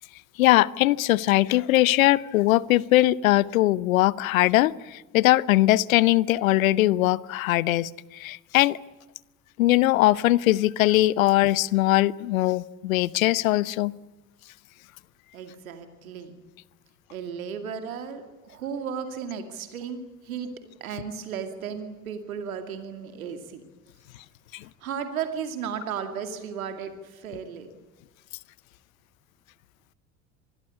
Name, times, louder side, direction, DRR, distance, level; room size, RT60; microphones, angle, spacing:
voice 1, 0.4-8.8 9.6-13.9 24.5-24.6, left 16 dB, 80° left, 22 dB, 0.8 m, -21 dB
voice 2, 15.3-16.4 17.1-20.5 20.8-23.6 24.8-27.7, right 7 dB, 85° right, 7 dB, 2.5 m, -35 dB
26.0 x 20.5 x 8.4 m, 1.1 s
hypercardioid pair, 60°, 41 cm